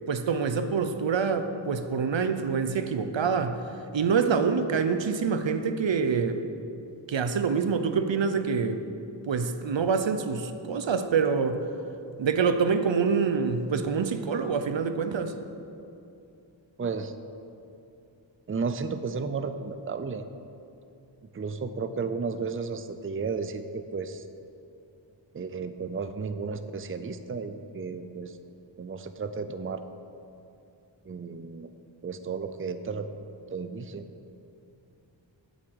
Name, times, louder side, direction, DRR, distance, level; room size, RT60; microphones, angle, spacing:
voice 1, 0.1-3.6 3.9-6.4 7.1-8.8 9.3-11.6 12.2-15.3, right 5 dB, 75° right, 9 dB, 0.7 m, -26 dB
voice 2, 16.8-17.1 18.5-20.2 21.3-24.2 25.3-28.4 28.8-29.8 31.1-31.7 32.0-33.1 33.5-34.0, right 5 dB, 30° right, 10 dB, 0.5 m, -33 dB
8.1 x 7.7 x 7.9 m, 2.7 s
wide cardioid pair, 80°, 45 cm